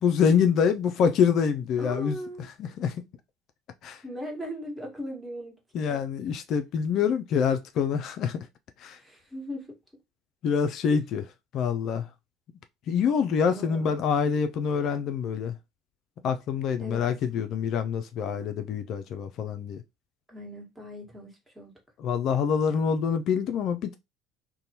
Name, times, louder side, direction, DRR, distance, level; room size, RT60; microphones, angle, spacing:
voice 1, 0.0-2.2 2.6-2.9 3.8-4.0 5.7-8.4 8.8-9.0 10.4-11.2 11.5-12.0 12.9-15.5 16.2-19.8 22.0-24.0, left 7 dB, 55° left, 0.3 m, -26 dB
voice 2, 1.8-2.5 4.0-5.6 5.9-6.0 9.0-9.8 10.9-11.0 13.5-14.0 16.8-17.1 20.3-21.7, equal, 10° right, 1.3 m, -38 dB
2.6 x 2.1 x 2.8 m
hypercardioid pair, 70°, 0 cm